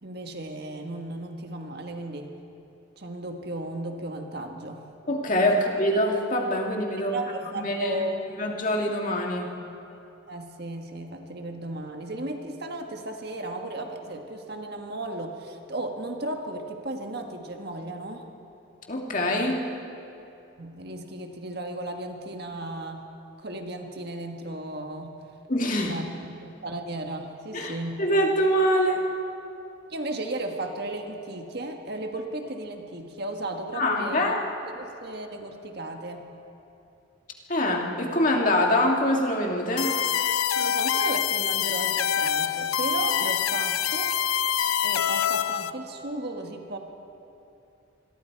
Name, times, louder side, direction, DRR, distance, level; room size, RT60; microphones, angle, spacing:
voice 1, 0.0-2.3 3.0-4.9 5.5-5.6 7.1-8.4 10.3-18.2 20.6-23.1 23.4-25.2 25.8-26.1 26.4-28.0 29.9-34.4 34.7-36.3 40.5-44.1 44.8-46.8, right 2 dB, 50° right, 4 dB, 1.6 m, -35 dB
voice 2, 5.1-7.2 7.5-8.0 8.4-9.5 18.9-19.7 25.5-25.9 27.5-29.0 33.8-34.4 37.5-40.0, left 1 dB, 40° left, 1 dB, 2.0 m, -24 dB
sound 1, 39.8-45.7, left 9 dB, 85° left, 0.6 m, -25 dB
26.5 x 21.5 x 4.7 m, 2.8 s
head